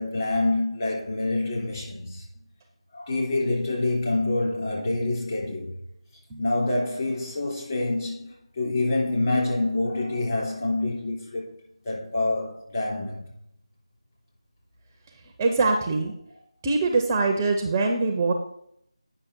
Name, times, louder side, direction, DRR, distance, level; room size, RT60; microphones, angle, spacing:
voice 1, 0.0-2.2 2.9-5.7 6.4-8.2 8.6-11.5 11.8-13.2, left 2 dB, 35° left, 3.3 m, -26 dB
voice 2, 15.4-16.1 16.6-18.3, right 3 dB, 15° right, 0.5 m, -23 dB
8.9 x 6.1 x 4.4 m
figure-of-eight pair, 170°, 3 cm